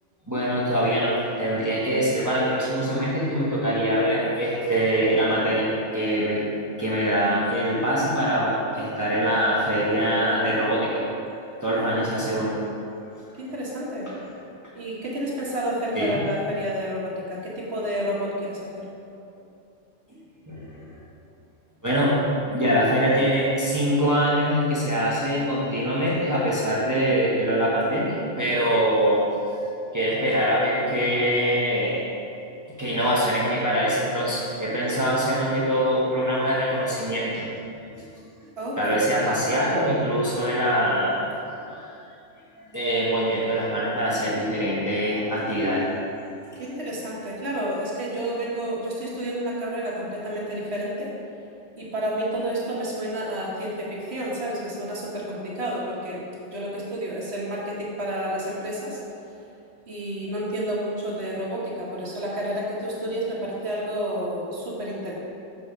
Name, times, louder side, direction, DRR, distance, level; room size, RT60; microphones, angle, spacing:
voice 1, 0.3-6.4 6.8-11.0 11.6-12.6 13.2-13.3 15.9-16.2 20.1-20.2 20.5-20.8 21.8-22.2 22.5-29.2 29.5-29.6 29.9-32.0 32.8-37.5 37.7-38.0 38.8-41.3 41.7-41.9 42.6-45.9 46.5-46.6, equal, 15° right, -7 dB, 1.1 m, -23 dB
voice 2, 13.4-14.1 14.7-18.8 38.6-39.0 46.6-51.1 51.8-59.0 59.9-65.1, equal, 60° right, -5 dB, 1.5 m, -30 dB
6.6 x 4.1 x 5.1 m, 2.6 s
omnidirectional pair, 1.3 m